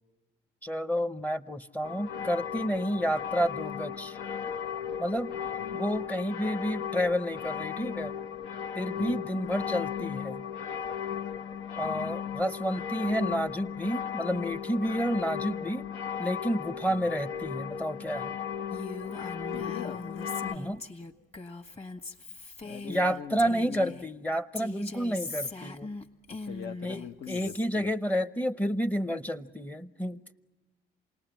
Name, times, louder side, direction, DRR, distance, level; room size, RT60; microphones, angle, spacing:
voice 1, 0.6-4.2 5.0-5.3 5.7-8.1 8.7-10.4 11.8-15.9 16.2-18.3 20.5-20.8 22.9-25.9 26.8-30.2, equal, 5° left, 14 dB, 0.8 m, -30 dB
sound 1, 1.8-20.6, left 8 dB, 80° left, 1.1 m, -36 dB
voice 2, 11.8-12.2 15.2-15.3 16.9-17.1 19.5-20.0 22.6-24.0 26.3-27.9, left 8 dB, 60° left, 4 dB, 0.9 m, -42 dB
Female speech woman speaking, 18.7-24.1 24.5-27.7, left 3 dB, 30° left, 1.7 m, -41 dB
28.0 x 19.0 x 8.8 m, 1.2 s
cardioid pair, 90°, 20 cm